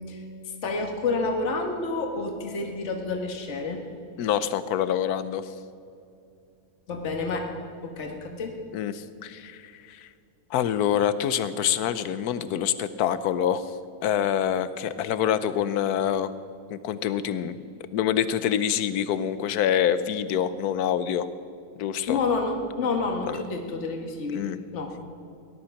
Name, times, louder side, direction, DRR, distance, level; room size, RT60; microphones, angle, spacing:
voice 1, 0.0-3.8 6.9-7.5 7.8-8.5 22.1-24.4 24.7-24.9, left 3 dB, 50° left, 3 dB, 1.7 m, -29 dB
voice 2, 4.2-5.5 8.7-10.1 10.5-13.6 14.0-16.3 16.7-17.6 17.9-21.3 21.8-22.2 23.3-23.4 24.3-24.6, left 9 dB, 80° left, 14 dB, 1.2 m, -26 dB
18.5 x 11.5 x 5.8 m, 2.6 s
omnidirectional pair, 1.7 m